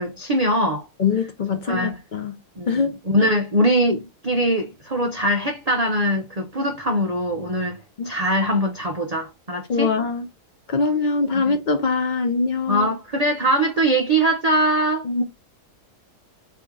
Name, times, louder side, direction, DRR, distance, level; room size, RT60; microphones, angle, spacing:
voice 1, 0.0-0.9 1.7-2.0 2.6-9.9 11.3-11.5 12.7-15.1, right 1 dB, 55° right, 0.4 m, -22 dB
voice 2, 1.0-2.4 2.7-3.3 8.0-8.1 9.7-10.3 10.7-12.9 15.0-15.2, left 4 dB, 85° left, 0.4 m, -23 dB
4.3 x 2.8 x 3.6 m
omnidirectional pair, 1.7 m